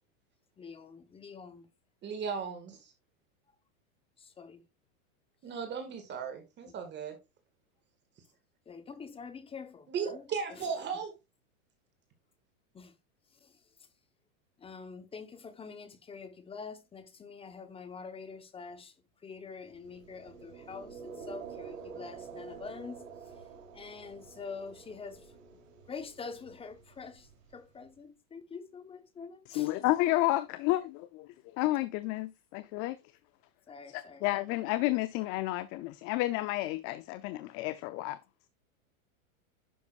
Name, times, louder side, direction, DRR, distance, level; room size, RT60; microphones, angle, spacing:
voice 1, 0.6-1.7 4.2-4.6 6.6-6.7 8.7-10.7 12.7-12.9 13.4-13.6 14.6-18.9 19.2-23.3 23.7-25.3 25.9-29.7 33.7-34.2 34.5-34.6, left 5 dB, 15° left, 0.9 m, -46 dB
voice 2, 2.0-2.9 5.4-7.2 9.9-11.1, right 6 dB, 25° right, 1.9 m, -36 dB
sound 1, 19.7-27.8, right 5 dB, 65° right, 3.5 m, -48 dB
voice 3, 29.5-31.3 31.6-33.0 33.9-38.2, left 17 dB, 30° left, 0.5 m, -31 dB
11.0 x 6.1 x 2.4 m
supercardioid pair, 135°, 41 cm